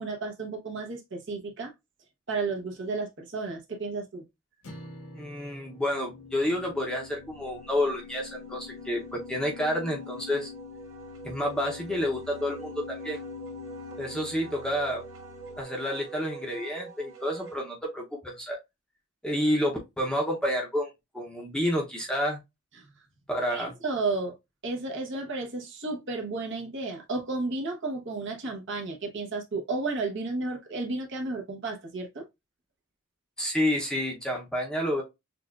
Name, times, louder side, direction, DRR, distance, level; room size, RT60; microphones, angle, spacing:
voice 1, 0.0-1.7 2.3-4.2 22.8-22.9 23.5-24.3 24.6-32.3, right 3 dB, 60° right, 1.1 m, -32 dB
sound 1, 4.6-9.0, equal, 90° left, 1.5 m, -49 dB
voice 2, 5.1-10.5 11.2-13.2 14.0-15.0 15.6-18.6 19.2-20.9 21.1-22.4 23.3-23.7 33.4-35.0, equal, 5° left, 0.8 m, -29 dB
sound 2, 5.5-15.6, left 7 dB, 60° left, 0.3 m, -45 dB
Wind instrument woodwind instrument, 6.6-17.6, right 5 dB, 90° right, 1.8 m, -47 dB
6.5 x 2.4 x 2.4 m
head